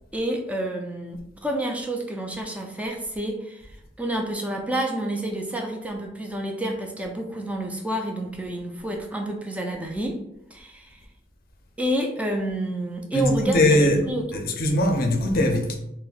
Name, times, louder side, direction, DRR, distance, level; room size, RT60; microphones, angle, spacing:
voice 1, 0.1-3.7 4.0-10.2 10.5-11.0 11.8-14.4, right 1 dB, 5° right, 2 dB, 0.3 m, -29 dB
voice 2, 13.1-14.0 14.3-15.8, left 1 dB, 50° left, 4 dB, 0.5 m, -21 dB
2.6 x 2.1 x 3.9 m, 0.81 s
head